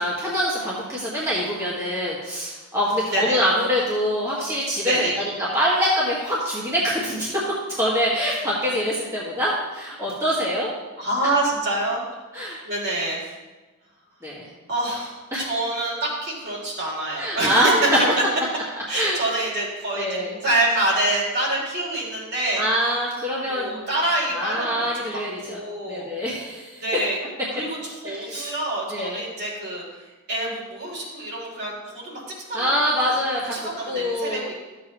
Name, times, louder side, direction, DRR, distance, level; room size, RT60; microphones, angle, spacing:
voice 1, 0.0-10.7 12.3-12.6 14.2-14.5 15.3-15.5 17.2-17.7 18.7-19.2 19.9-20.3 22.6-23.9 24.3-25.6 25.8-26.8 28.0-28.5 28.9-29.2 32.5-34.5, equal, 15° right, -7 dB, 1.7 m, -25 dB
voice 2, 4.8-5.2 11.0-12.0 12.6-13.2 14.7-17.7 18.9-22.6 23.5-26.0 26.8-27.2 27.5-29.8 30.3-32.2 32.5-32.7 33.0-33.1 33.5-34.5, right 1 dB, 50° right, -4 dB, 3.0 m, -26 dB
12.5 x 7.2 x 3.0 m, 1.2 s
head